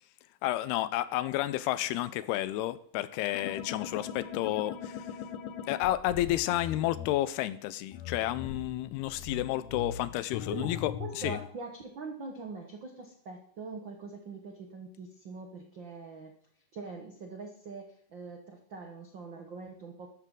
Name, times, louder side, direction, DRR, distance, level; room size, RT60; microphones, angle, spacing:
voice 1, 0.4-5.1 5.7-11.4, left 14 dB, 90° left, 14 dB, 2.7 m, -31 dB
sound 1, 3.3-7.1 7.9-11.5, left 8 dB, 65° left, 1.9 m, -40 dB
voice 2, 11.0-16.3 16.7-17.8 18.1-20.1, right 4 dB, 75° right, 2 dB, 1.0 m, -43 dB
14.5 x 12.5 x 3.8 m, 0.62 s
omnidirectional pair, 4.5 m